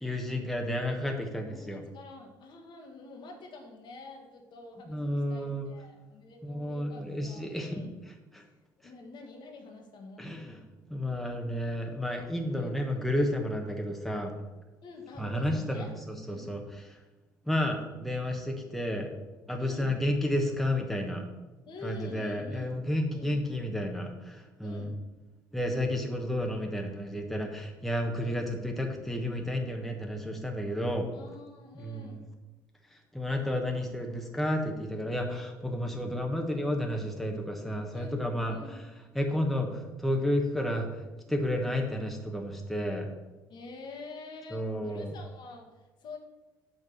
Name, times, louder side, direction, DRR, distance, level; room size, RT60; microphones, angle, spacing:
voice 1, 0.0-1.8 4.9-5.7 6.4-7.8 8.3-8.4 10.2-10.6 10.9-14.4 15.2-15.9 16.3-16.6 16.9-17.0 17.5-19.1 19.5-21.2 21.8-24.9 25.5-31.1 31.8-32.2 33.1-38.6 39.1-41.0 41.3-43.1 44.5-45.1, left 1 dB, ahead, 2 dB, 1.1 m, -31 dB
voice 2, 1.5-8.0 8.8-10.3 12.5-12.7 14.8-15.9 16.3-16.6 19.6-20.0 21.7-22.8 23.1-23.4 24.6-25.0 28.2-28.4 31.1-32.2 37.9-38.8 43.5-45.7 46.0-46.2, left 3 dB, 50° left, 3 dB, 1.5 m, -47 dB
6.1 x 5.2 x 6.6 m, 1.2 s
figure-of-eight pair, 55°, 10 cm